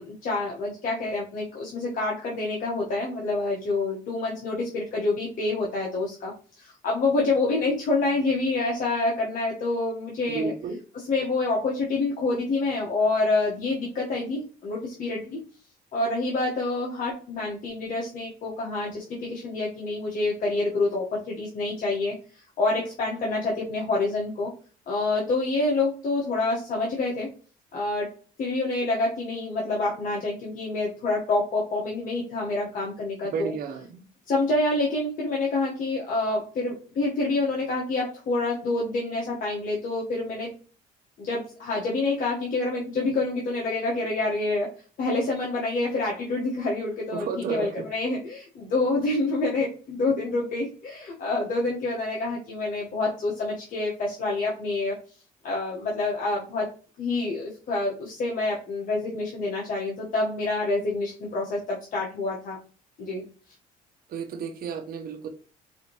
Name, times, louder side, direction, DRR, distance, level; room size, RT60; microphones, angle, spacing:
voice 1, 0.0-10.5 11.1-15.4 15.9-22.1 22.6-24.5 24.9-27.3 27.7-28.1 28.4-33.5 34.3-40.5 41.2-44.7 45.0-54.9 55.4-56.7 57.0-62.6 63.0-63.2, left 2 dB, 55° left, -4 dB, 1.3 m, -27 dB
voice 2, 10.3-10.8 33.2-34.0 47.1-47.8 64.1-65.3, right 5 dB, 60° right, 4 dB, 1.1 m, -32 dB
4.8 x 2.9 x 3.0 m, 0.39 s
cardioid pair, 110°, 17 cm